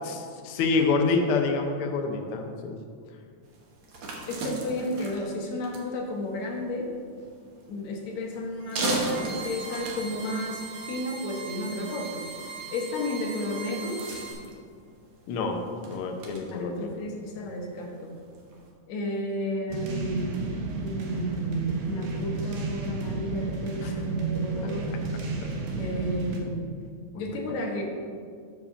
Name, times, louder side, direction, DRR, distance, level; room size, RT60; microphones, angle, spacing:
voice 1, 0.0-2.8 15.3-17.0 23.8-24.0 25.4-25.5, left 4 dB, 85° left, 3 dB, 1.2 m, -27 dB
sound 1, 3.4-18.7, right 2 dB, 60° right, 1.6 m, -39 dB
voice 2, 4.3-6.9 7.7-12.3 12.7-14.0 16.5-18.1 18.9-20.4 20.8-24.9 25.8-26.7 27.1-27.8, left 1 dB, 70° left, 1 dB, 2.2 m, -32 dB
sound 2, 8.6-14.3, right 4 dB, 30° right, 2.0 m, -40 dB
sound 3, 19.7-26.4, right 4 dB, 80° right, 1.1 m, -31 dB
6.6 x 4.9 x 6.9 m, 2.1 s
omnidirectional pair, 3.5 m